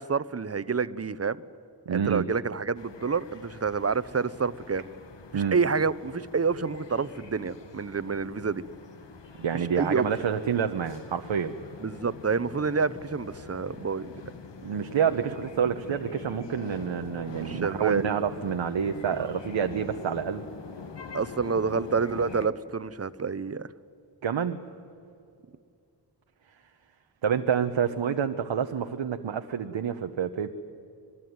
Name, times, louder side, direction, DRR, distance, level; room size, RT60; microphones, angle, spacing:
voice 1, 0.0-1.4 1.9-4.8 5.3-8.6 9.5-10.1 11.8-14.1 17.4-18.1 19.2-19.3 21.1-23.7, right 5 dB, 35° right, 17 dB, 0.8 m, -28 dB
voice 2, 1.9-2.3 5.3-5.6 9.4-11.5 14.6-20.4 24.2-24.6 27.2-30.5, right 7 dB, 80° right, 6 dB, 1.0 m, -28 dB
sound 1, 2.8-22.5, left 5 dB, 70° left, 1.7 m, -44 dB
26.5 x 20.0 x 9.5 m, 2.5 s
cardioid pair, 65°, 45 cm